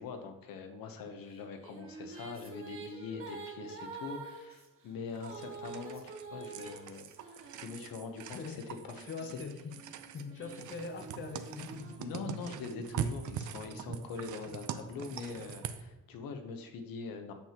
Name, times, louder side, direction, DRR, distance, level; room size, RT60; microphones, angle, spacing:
voice 1, 0.0-9.1 12.0-17.3, left 5 dB, 75° left, 6 dB, 1.0 m, -43 dB
Female singing, 1.3-8.2 8.9-12.7, right 4 dB, 40° right, 1.3 m, -48 dB
sound 1, 5.1-15.8, right 8 dB, 60° right, 0.6 m, -42 dB
voice 2, 8.3-8.7 9.0-9.7 10.1-12.0 13.0-13.1, left 4 dB, 35° left, 6 dB, 0.6 m, -42 dB
8.8 x 7.6 x 2.9 m, 1.0 s
cardioid pair, 155°, 35 cm